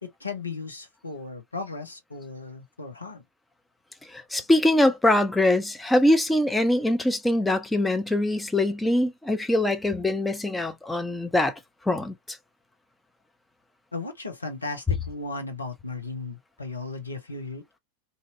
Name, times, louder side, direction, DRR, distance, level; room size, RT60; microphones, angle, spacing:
voice 1, 0.0-3.2 13.9-17.8, left 3 dB, 80° left, 0.9 m, -36 dB
voice 2, 4.1-11.5 11.9-12.4, left 1 dB, 5° left, 0.6 m, -23 dB
2.7 x 2.7 x 2.4 m
figure-of-eight pair, 90°, 0 cm